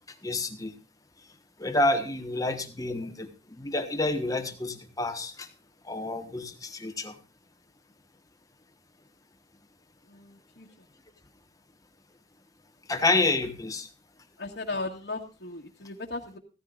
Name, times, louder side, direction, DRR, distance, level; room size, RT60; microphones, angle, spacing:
voice 1, 0.2-0.7 1.6-5.5 5.8-7.2 12.9-13.9, left 2 dB, 20° left, 7 dB, 1.2 m, -29 dB
voice 2, 10.1-10.7 14.4-16.4, left 3 dB, 70° left, -3 dB, 1.7 m, -36 dB
16.0 x 14.0 x 2.5 m, 0.32 s
head